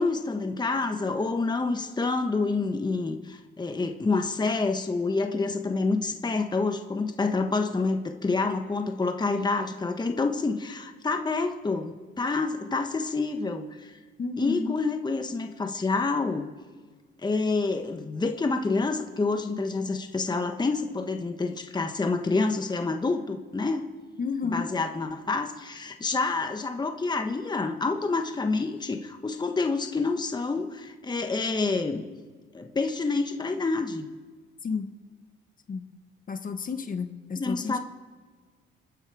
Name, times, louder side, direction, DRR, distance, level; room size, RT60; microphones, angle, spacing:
voice 1, 0.0-13.9 14.4-16.5 17.2-23.9 24.5-32.0 32.5-34.1 37.3-37.8, left 3 dB, 20° left, 5 dB, 1.3 m, -28 dB
voice 2, 14.2-14.7 24.2-24.7 34.6-34.9 35.7-35.8 36.3-37.8, left 5 dB, 45° left, 8 dB, 1.4 m, -31 dB
28.5 x 10.0 x 4.9 m, 1.5 s
cardioid pair, 90°, 20 cm